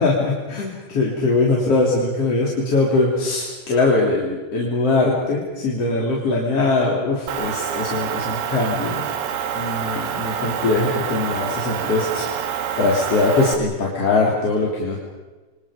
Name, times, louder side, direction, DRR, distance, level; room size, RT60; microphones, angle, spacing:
voice 1, 0.0-9.0 9.5-12.4 12.8-15.0, left 3 dB, 35° left, -3 dB, 4.0 m, -21 dB
Motor vehicle (road) / Engine, 7.3-13.6, right 8 dB, 85° right, 4.2 m, -27 dB
29.0 x 26.5 x 5.2 m, 1.2 s
omnidirectional pair, 5.6 m